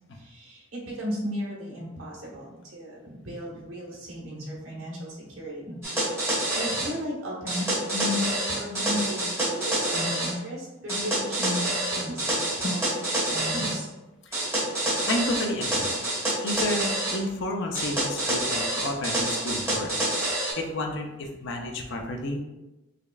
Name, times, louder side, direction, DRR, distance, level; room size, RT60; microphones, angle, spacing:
voice 1, 0.1-5.8 6.1-13.9, left 1 dB, 75° right, -3 dB, 1.1 m, -35 dB
sound 1, 5.8-6.9 7.5-10.3 10.9-13.8 14.3-17.2 17.7-20.5, right 1 dB, 15° right, 1.4 m, -27 dB
voice 2, 15.0-16.0 16.4-19.9 20.6-22.4, left 1 dB, 60° left, 2 dB, 0.5 m, -31 dB
5.0 x 2.3 x 2.3 m, 1.0 s
head